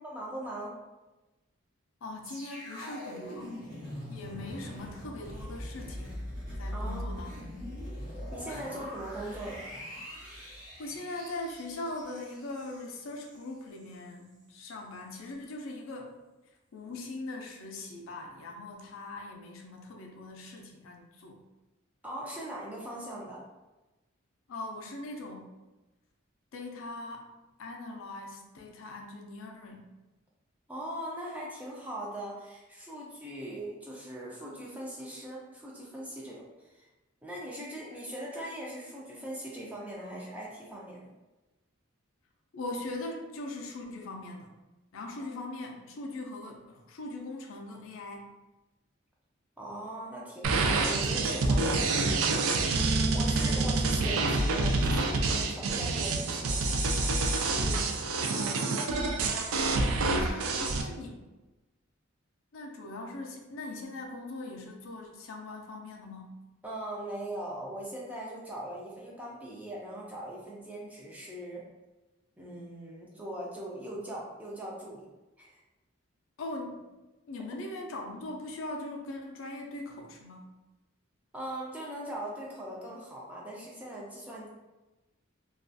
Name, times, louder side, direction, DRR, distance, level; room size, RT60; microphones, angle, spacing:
voice 1, 0.0-0.8 6.7-7.2 8.3-9.6 22.0-23.4 30.7-36.8 37.2-41.1 45.2-45.4 49.6-52.4 53.1-57.1 57.6-58.0 66.6-71.6 72.4-75.1 75.4-75.6 81.3-84.5, right 1 dB, 5° right, -4 dB, 0.4 m, -40 dB
voice 2, 2.0-3.6 4.1-6.2 6.6-7.5 8.5-8.7 10.8-16.2 16.7-21.4 24.5-25.5 26.5-27.3 27.6-29.8 42.5-44.5 44.9-48.2 59.6-60.5 60.8-61.2 62.5-66.4 76.4-76.9 77.3-80.5, left 2 dB, 75° left, 2 dB, 0.4 m, -41 dB
sound 1, 2.2-13.4 13.7-13.9, equal, 40° right, 0.8 m, -41 dB
sound 2, 50.4-60.8, right 3 dB, 90° right, 0.3 m, -27 dB
2.3 x 2.3 x 2.5 m, 1.1 s
head